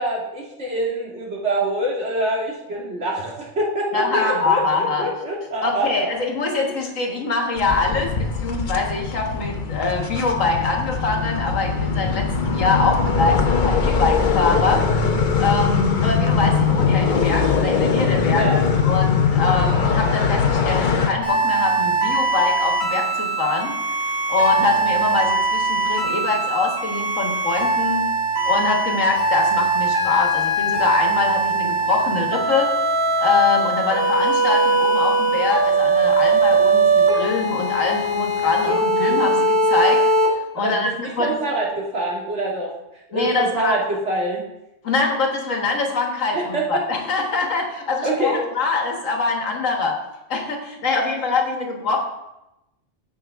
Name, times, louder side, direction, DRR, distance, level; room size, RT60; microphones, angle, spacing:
voice 1, 0.0-6.1 6.6-6.7 18.3-18.6 40.6-42.7 43.1-44.4 46.3-46.9 48.0-48.4, right 1 dB, 60° right, -3 dB, 2.2 m, -25 dB
voice 2, 3.9-5.1 5.6-14.8 15.4-23.8 24.3-28.1 28.4-32.7 33.2-40.0 40.5-41.3 43.1-43.8 44.8-50.0 50.3-52.0, left 3 dB, 85° left, 2 dB, 1.8 m, -23 dB
sound 1, 7.6-21.1, left 5 dB, 45° left, 0.8 m, -21 dB
sound 2, 21.2-40.3, right 2 dB, 85° right, 2.6 m, -21 dB
15.0 x 5.3 x 3.5 m, 0.91 s
omnidirectional pair, 1.3 m